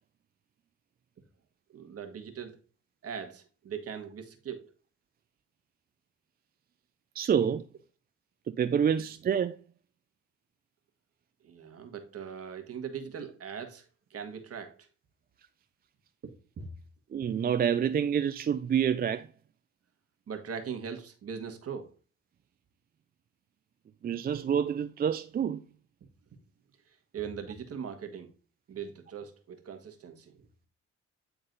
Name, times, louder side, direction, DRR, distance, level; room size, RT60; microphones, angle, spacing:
voice 1, 1.7-2.6 3.0-4.7 11.4-14.9 16.2-16.7 20.3-21.9 26.9-28.3 28.7-30.5, right 7 dB, 50° right, 1.6 m, -40 dB
voice 2, 7.2-7.7 8.5-9.6 17.1-19.3 24.0-25.6, right 8 dB, 30° right, 0.4 m, -27 dB
9.4 x 3.9 x 3.9 m
cardioid pair, 90°, 30 cm